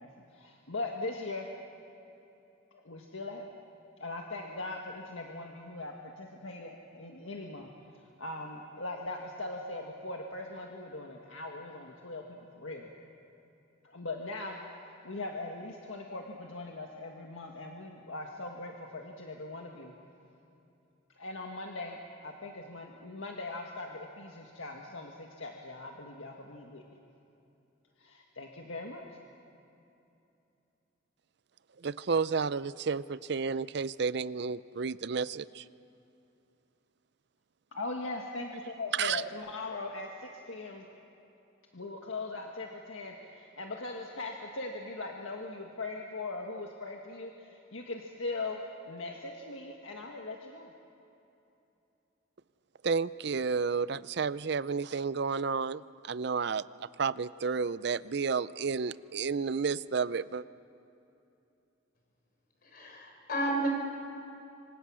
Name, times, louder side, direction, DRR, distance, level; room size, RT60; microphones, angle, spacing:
voice 1, 0.0-1.5 2.7-3.5 4.0-7.7 8.2-12.9 13.8-14.6 14.8-19.9 21.2-26.8 28.0-29.0 37.7-40.9 41.7-48.6 48.9-50.7, left 2 dB, 85° left, 1 dB, 1.7 m, -40 dB
voice 2, 31.8-35.7 38.9-39.2 52.8-60.4, right 5 dB, 55° right, 17 dB, 0.5 m, -31 dB
voice 3, 62.6-63.7, right 1 dB, 50° left, 2 dB, 4.7 m, -32 dB
26.0 x 25.5 x 6.3 m, 2.8 s
head